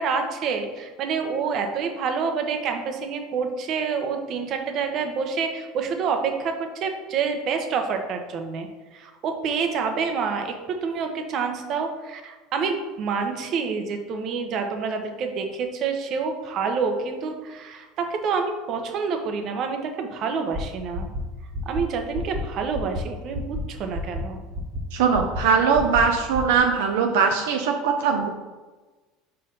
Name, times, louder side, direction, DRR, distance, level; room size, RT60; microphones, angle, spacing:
voice 1, 0.0-8.7 8.9-10.5 10.8-21.1 21.7-24.4, right 5 dB, 50° right, 5 dB, 1.0 m, -27 dB
sound 1, 20.5-20.6 20.9-21.2 21.5-21.8 22.1-22.4 22.7-23.0 23.3-23.6 23.9-24.2 24.5-24.8 25.1-25.4 25.7-26.0 26.3-26.6, equal, 20° right, 1.4 m, -30 dB
voice 2, 24.9-28.3, right 6 dB, 85° right, 3 dB, 0.6 m, -21 dB
5.0 x 4.6 x 5.4 m, 1.3 s
supercardioid pair, 110°, 0 cm